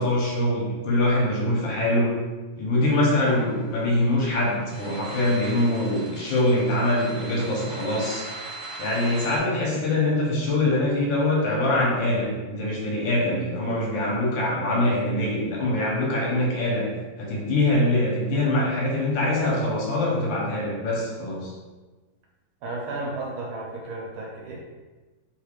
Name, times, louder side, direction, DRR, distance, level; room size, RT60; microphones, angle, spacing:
voice 1, 0.0-2.1 2.6-8.2 8.8-16.9 17.2-21.5, left 1 dB, 70° left, -4 dB, 1.5 m, -23 dB
sound 1, 2.8-9.4, right 2 dB, 50° right, 0.4 m, -39 dB
voice 2, 22.6-24.6, right 2 dB, 80° right, -2 dB, 1.6 m, -33 dB
3.7 x 3.1 x 2.4 m, 1.3 s
omnidirectional pair, 2.3 m